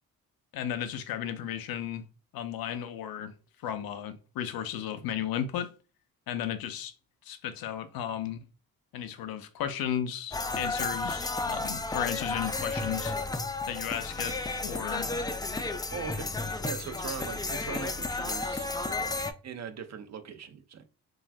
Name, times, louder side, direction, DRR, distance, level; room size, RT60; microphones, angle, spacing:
voice 1, 0.5-2.0 2.3-3.3 3.6-5.7 6.3-6.9 7.2-8.4 8.9-13.1 13.7-14.4 14.6-15.1, left 10 dB, 75° left, 0.5 m, -34 dB
sound 1, 10.3-19.3, left 3 dB, 10° left, 0.3 m, -33 dB
voice 2, 15.9-18.7 19.4-20.8, right 7 dB, 50° right, 0.6 m, -40 dB
2.5 x 2.2 x 3.3 m
supercardioid pair, 55°, 36 cm